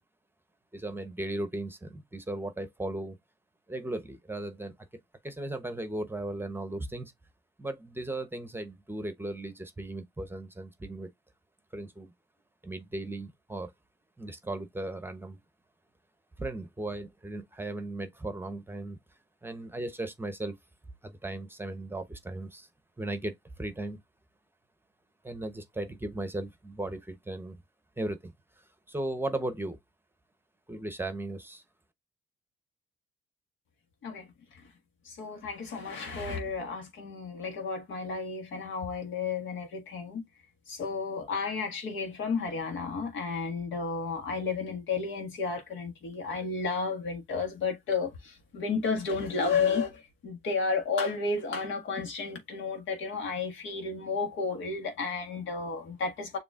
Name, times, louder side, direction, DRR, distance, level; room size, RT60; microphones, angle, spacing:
voice 1, 0.7-3.2 3.7-4.7 5.2-7.1 7.6-11.1 11.7-12.1 12.6-13.7 14.2-15.4 16.4-19.0 19.4-20.6 21.0-22.7 23.0-24.0 25.2-27.6 28.0-29.8 30.7-31.6, right 2 dB, 10° right, 0.8 m, -36 dB
voice 2, 34.0-34.7 35.0-40.3 40.7-56.4, left 4 dB, 80° left, 1.6 m, -32 dB
6.9 x 2.8 x 2.4 m
cardioid pair, 90°, 20 cm